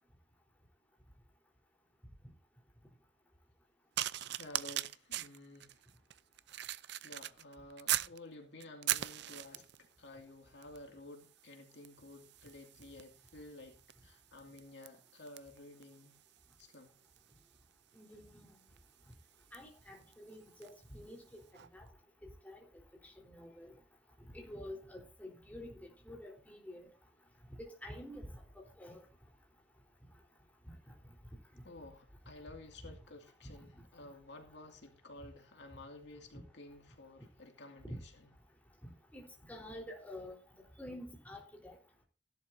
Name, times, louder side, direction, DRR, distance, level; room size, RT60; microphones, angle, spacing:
sound 1, 4.0-8.2 8.6-9.9 10.6-10.9 11.1-20.8 21.5-21.7, right 13 dB, 60° right, 0.5 m, -41 dB
voice 1, 4.4-5.8 6.5-16.1 16.6-16.9 31.6-38.3, left 2 dB, 65° left, 4 dB, 2.4 m, -53 dB
voice 2, 18.0-18.5 19.5-21.4 21.7-21.8 22.4-22.6 23.3-23.7 24.3-26.9 27.8-28.3 28.6-29.0 32.8-32.9 37.8-38.0 39.1-39.2 39.5-40.4 40.8-41.8, left 1 dB, 10° left, 0 dB, 3.9 m, -48 dB
17.0 x 11.5 x 2.7 m, 0.33 s
head